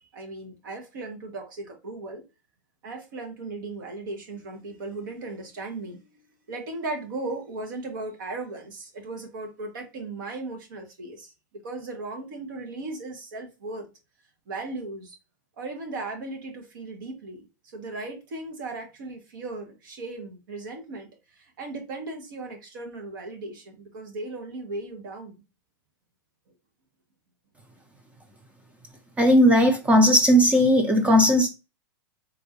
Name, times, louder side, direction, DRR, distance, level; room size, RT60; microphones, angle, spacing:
voice 1, 0.1-2.2 2.8-6.2 6.5-13.9 14.5-15.2 15.6-17.5 17.7-25.4, right 2 dB, 70° right, 1.3 m, -37 dB
voice 2, 29.2-31.5, equal, 10° right, 0.5 m, -17 dB
3.7 x 2.6 x 2.9 m
hypercardioid pair, 135°, 11 cm